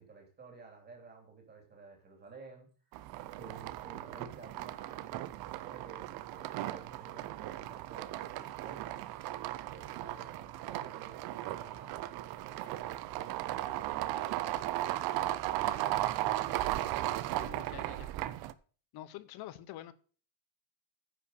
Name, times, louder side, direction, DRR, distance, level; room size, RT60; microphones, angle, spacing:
voice 1, 0.0-2.9 3.3-9.1 9.7-12.6 13.1-15.9, right 4 dB, 20° right, 3.0 m, -54 dB
sound 1, 2.9-18.5, right 14 dB, 50° right, 0.6 m, -36 dB
voice 2, 17.4-18.2 18.9-19.9, left 14 dB, 50° left, 0.9 m, -47 dB
9.9 x 5.7 x 6.4 m
cardioid pair, 175°, 49 cm